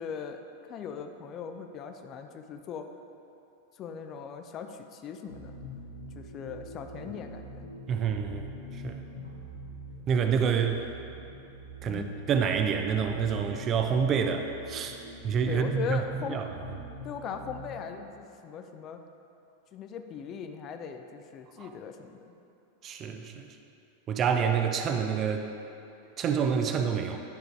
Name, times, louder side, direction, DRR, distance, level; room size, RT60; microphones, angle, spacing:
voice 1, 0.0-2.9 3.7-5.5 6.1-7.6 11.8-12.2 15.5-16.4 17.0-19.0 19.7-22.3, left 7 dB, 30° left, 6 dB, 0.4 m, -39 dB
sound 1, 5.3-18.0, right 1 dB, 85° left, 1.0 m, -45 dB
voice 2, 7.9-9.0 10.1-10.8 11.8-15.0 15.2-16.5 21.6-21.7 22.8-23.6 24.1-25.5 26.2-27.2, right 6 dB, 30° right, 5 dB, 0.5 m, -28 dB
10.0 x 3.9 x 4.5 m, 2.7 s
figure-of-eight pair, 90°, 0 cm